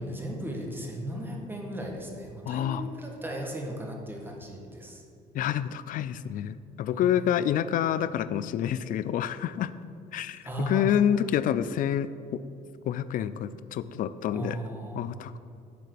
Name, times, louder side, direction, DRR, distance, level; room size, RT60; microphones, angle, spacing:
voice 1, 0.0-5.0 6.9-7.1 10.4-10.9 14.3-15.1, right 1 dB, 10° right, 0 dB, 1.5 m, -36 dB
voice 2, 2.5-2.8 5.3-9.7 10.1-12.4 12.9-14.6 14.9-15.4, left 10 dB, 55° left, 14 dB, 0.4 m, -28 dB
10.5 x 3.9 x 6.6 m, 2.4 s
cardioid pair, 110°, 17 cm